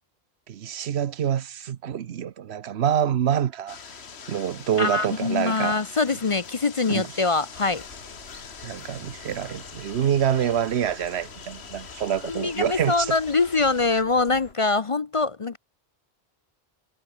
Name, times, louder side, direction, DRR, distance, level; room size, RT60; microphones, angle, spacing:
voice 1, 0.5-3.8 4.3-5.8 6.9-7.2 8.6-13.1, right 9 dB, 85° right, 1.1 m, -26 dB
sound 1, 3.7-14.0, left 6 dB, 85° left, 1.7 m, -43 dB
voice 2, 4.8-7.8 12.3-15.6, left 3 dB, 35° left, 0.6 m, -24 dB
sound 2, 7.5-14.5, left 3 dB, 70° left, 3.1 m, -48 dB
omnidirectional pair, 1.1 m